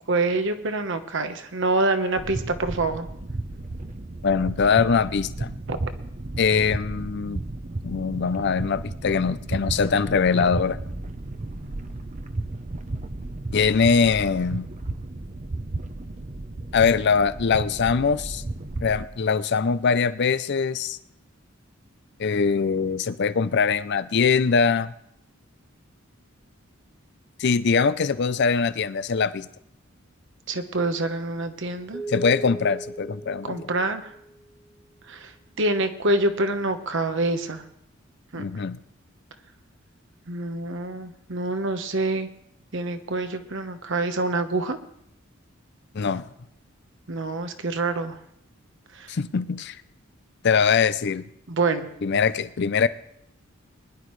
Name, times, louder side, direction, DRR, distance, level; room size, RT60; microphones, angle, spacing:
voice 1, 0.1-3.1 5.7-5.8 10.4-10.5 30.5-32.0 33.5-34.0 35.1-35.3 35.6-37.6 38.3-38.4 40.3-42.3 42.7-44.8 47.1-48.2 51.5-51.9, right 2 dB, 65° right, 8 dB, 1.1 m, -26 dB
sound 1, 2.2-19.1, right 2 dB, 35° right, 0.7 m, -34 dB
voice 2, 4.2-5.5 6.4-7.4 7.8-10.8 13.5-14.7 16.7-18.4 18.8-21.0 22.2-24.9 27.4-29.5 32.1-33.7 38.4-38.8 45.9-46.3 49.1-49.8 50.4-51.3 52.0-52.9, left 5 dB, 55° left, 15 dB, 0.5 m, -22 dB
sound 2, 31.9-34.5, right 2 dB, 10° left, 1.2 m, -37 dB
21.5 x 11.0 x 3.2 m, 0.73 s
head